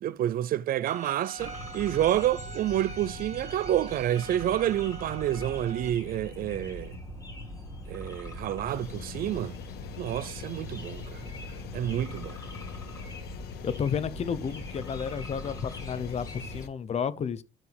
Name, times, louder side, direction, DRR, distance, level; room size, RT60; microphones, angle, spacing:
voice 1, 0.0-7.0 7.9-9.5 10.0-11.2 11.7-12.4, right 12 dB, 60° right, 0.5 m, -29 dB
Bowed string instrument, 0.9-5.9, right 3 dB, 40° right, 1.6 m, -44 dB
sound 1, 1.4-16.7, equal, 20° left, 4.3 m, -42 dB
sound 2, 8.7-16.7, left 12 dB, 70° left, 0.7 m, -44 dB
voice 2, 13.6-17.4, left 7 dB, 40° left, 0.8 m, -32 dB
12.0 x 4.9 x 3.4 m
cardioid pair, 110°, 17 cm